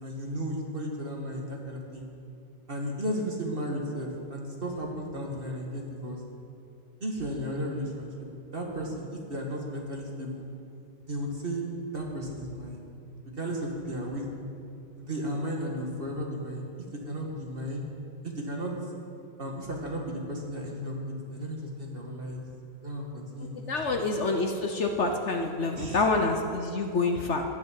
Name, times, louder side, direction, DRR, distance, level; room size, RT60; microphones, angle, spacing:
voice 1, 0.0-2.1 2.7-6.2 7.0-8.1 8.5-10.5 11.0-11.7 11.9-12.8 13.2-14.2 15.0-16.6 17.0-17.8 18.2-18.7 19.4-21.0 21.3-22.5 22.8-24.0 25.7-26.0, equal, 30° right, 0 dB, 1.6 m, -34 dB
voice 2, 23.7-27.4, left 3 dB, 60° left, 4 dB, 0.7 m, -27 dB
10.5 x 10.0 x 7.5 m, 2.6 s
omnidirectional pair, 2.1 m